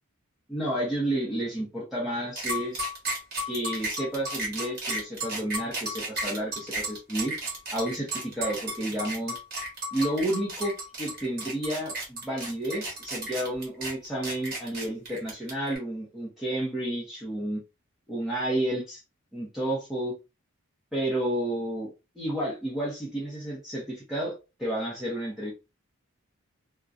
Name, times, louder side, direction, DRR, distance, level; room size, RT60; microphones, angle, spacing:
voice 1, 0.5-2.8 3.4-7.3 7.7-9.4 9.9-17.6 18.1-19.0 19.3-20.1 20.9-21.9 22.2-25.5, right 1 dB, ahead, 0.6 m, -31 dB
sound 1, 2.4-15.8, right 1 dB, 45° right, 1.2 m, -33 dB
2.4 x 2.1 x 2.4 m
head